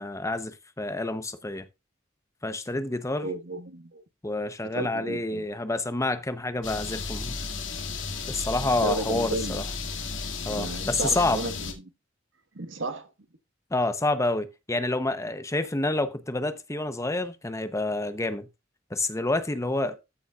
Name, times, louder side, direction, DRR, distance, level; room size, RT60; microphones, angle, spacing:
voice 1, 0.0-1.7 2.4-3.3 4.2-7.4 8.3-9.7 10.5-11.4 13.7-18.5 18.9-20.0, left 2 dB, 15° left, 0.8 m, -28 dB
voice 2, 3.2-4.0 4.7-5.4 8.8-9.6 10.5-11.7 12.5-13.1, right 2 dB, 70° right, 1.5 m, -33 dB
sound 1, 6.6-11.7, left 4 dB, 70° left, 2.4 m, -34 dB
14.5 x 7.0 x 2.4 m
head